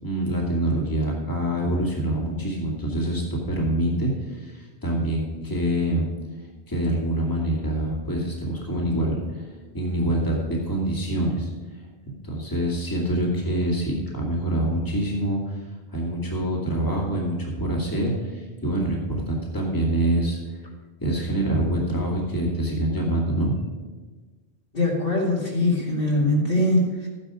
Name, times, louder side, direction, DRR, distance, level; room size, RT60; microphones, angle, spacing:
voice 1, 0.0-6.1 6.7-9.4 9.7-11.5 12.2-20.6 21.0-23.5, right 1 dB, 20° left, -2 dB, 2.3 m, -25 dB
voice 2, 24.7-27.1, left 1 dB, 55° left, -3 dB, 2.9 m, -22 dB
14.0 x 9.8 x 5.0 m, 1.3 s
omnidirectional pair, 1.1 m